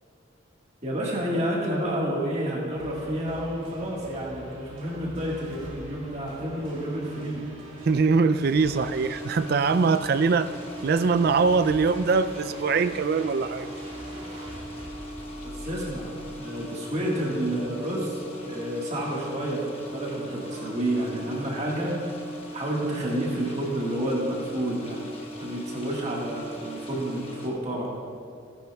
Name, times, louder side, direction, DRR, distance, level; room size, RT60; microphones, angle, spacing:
voice 1, 0.8-7.4 15.4-16.1 16.4-25.0 25.4-28.0, right 1 dB, 35° right, -3 dB, 1.6 m, -30 dB
sound 1, 2.7-17.7 19.5-21.8, equal, 85° right, 2.0 m, -44 dB
voice 2, 7.8-10.5 10.8-13.7, right 4 dB, 50° right, 12 dB, 0.3 m, -22 dB
sound 2, 8.6-27.5, equal, 30° left, 1.1 m, -39 dB
14.5 x 11.0 x 2.3 m, 2.4 s
head